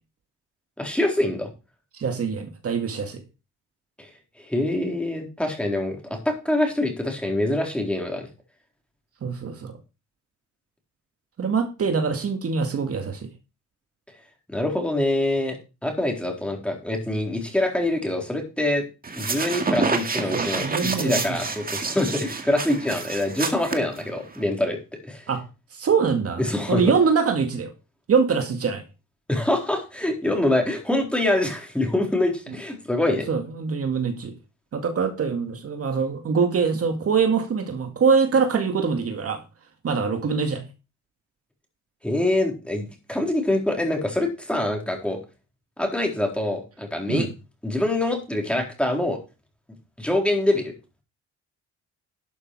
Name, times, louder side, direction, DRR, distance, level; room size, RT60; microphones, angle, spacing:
voice 1, 0.8-1.5 4.0-4.1 4.4-8.3 14.5-15.6 15.8-18.8 19.2-24.8 25.0-25.3 26.4-26.8 29.3-33.3 42.0-45.2 45.8-47.3 47.6-49.2 50.0-50.7, left 1 dB, 5° left, 2 dB, 4.0 m, -25 dB
voice 2, 1.9-3.2 9.2-9.7 11.4-13.3 20.3-21.5 25.3-25.4 25.7-26.4 26.7-27.7 28.1-28.8 33.3-34.3 34.7-39.4 39.8-40.6 47.1-47.3, right 5 dB, 50° right, 6 dB, 2.1 m, -23 dB
sound 1, 19.0-24.4, right 4 dB, 30° right, 2.1 m, -28 dB
12.5 x 6.6 x 4.8 m, 0.31 s
cardioid pair, 90°, 30 cm